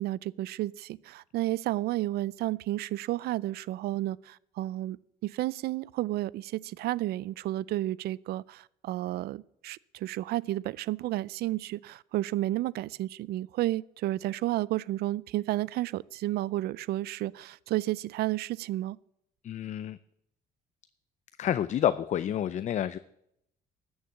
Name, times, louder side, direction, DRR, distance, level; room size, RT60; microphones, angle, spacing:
voice 1, 0.0-5.0 5.2-19.0, right 16 dB, 70° right, 0.4 m, -32 dB
voice 2, 19.4-20.0 21.4-23.0, left 10 dB, 45° left, 0.5 m, -29 dB
13.0 x 7.1 x 7.2 m
cardioid pair, 110°, 17 cm